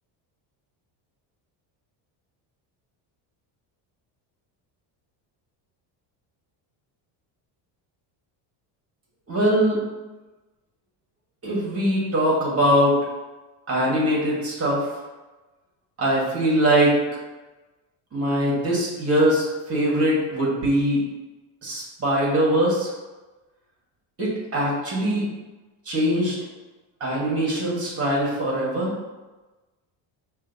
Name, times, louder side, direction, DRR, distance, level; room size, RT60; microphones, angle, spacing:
voice 1, 9.3-9.8 11.4-13.0 13.7-14.9 16.0-17.0 18.1-21.0 21.6-22.9 24.2-25.3 25.8-26.4 27.0-28.9, equal, 30° right, -4 dB, 1.4 m, -22 dB
5.0 x 2.7 x 2.6 m, 1.2 s
cardioid pair, 140°, 47 cm